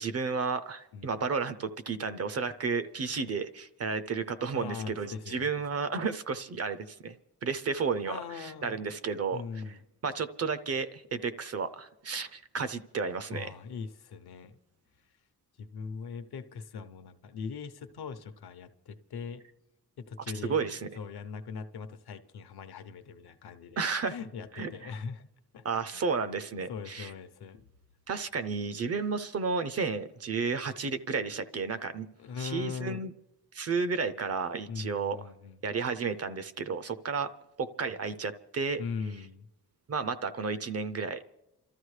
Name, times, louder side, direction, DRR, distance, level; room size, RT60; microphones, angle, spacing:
voice 1, 0.0-7.1 7.4-9.4 10.0-13.5 20.4-20.9 23.8-24.1 24.6-24.7 25.6-27.1 28.1-32.1 32.4-33.1 33.5-35.2 35.6-37.3 37.6-38.8 39.9-41.2, right 5 dB, 40° right, 11 dB, 0.5 m, -32 dB
voice 2, 4.5-5.5 8.1-8.8 9.3-9.8 13.3-14.6 15.6-19.4 20.0-25.3 25.5-25.6 25.9-26.1 26.7-27.7 32.2-33.0 34.7-35.6 38.8-39.5, left 5 dB, 75° left, 8 dB, 0.8 m, -40 dB
28.5 x 13.0 x 3.2 m, 0.91 s
wide cardioid pair, 180°, 38 cm